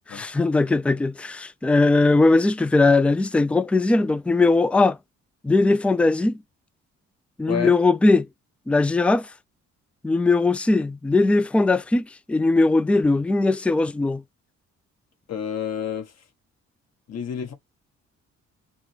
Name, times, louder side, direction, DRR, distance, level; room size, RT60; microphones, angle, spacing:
voice 1, 0.1-5.0 5.4-6.3 7.4-8.3 8.7-9.3 10.0-14.2, left 3 dB, 5° left, 0.3 m, -19 dB
voice 2, 15.3-16.1 17.1-17.5, left 8 dB, 55° left, 1.4 m, -29 dB
5.3 x 2.2 x 3.2 m
cardioid pair, 90°, 30 cm